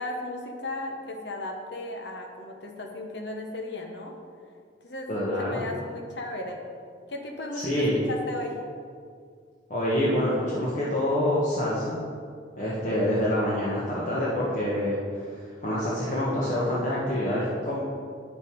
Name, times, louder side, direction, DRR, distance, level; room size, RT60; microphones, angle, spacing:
voice 1, 0.0-4.1 4.8-5.1 5.4-6.6 7.1-8.6, left 2 dB, 65° left, 3 dB, 1.1 m, -35 dB
voice 2, 5.1-5.6 7.6-8.0 9.7-12.0 12.6-15.3 15.6-17.8, left 1 dB, 40° left, -7 dB, 1.3 m, -26 dB
8.5 x 6.6 x 4.7 m, 2.2 s
head